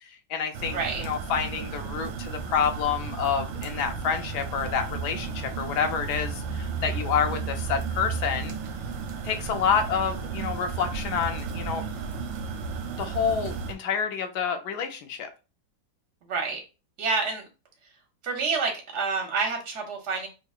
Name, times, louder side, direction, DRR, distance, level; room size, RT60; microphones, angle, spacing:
voice 1, 0.0-8.5 9.2-11.8 13.0-15.3, left 7 dB, 70° left, 7 dB, 1.0 m, -28 dB
sound 1, 0.5-13.7, right 5 dB, 85° right, 1.3 m, -33 dB
voice 2, 0.7-1.0 16.2-16.6 17.0-17.4 18.2-20.3, right 4 dB, 60° right, 2 dB, 0.7 m, -28 dB
5.4 x 2.0 x 2.3 m, 0.31 s
omnidirectional pair, 2.0 m